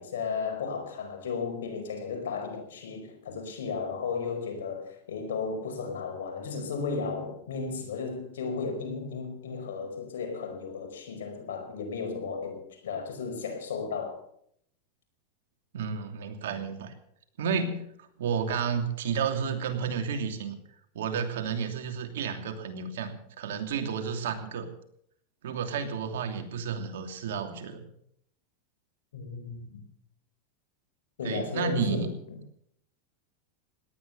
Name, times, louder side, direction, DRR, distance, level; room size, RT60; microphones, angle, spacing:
voice 1, 0.0-14.2 29.1-29.8 31.2-32.1, left 5 dB, 85° left, 4 dB, 5.1 m, -34 dB
voice 2, 15.7-16.9 17.4-17.9 18.2-20.5 20.9-24.7 25.4-27.9 31.2-32.1, right 6 dB, 80° right, 6 dB, 2.8 m, -31 dB
17.5 x 11.0 x 6.8 m, 0.69 s
supercardioid pair, 120°, 0 cm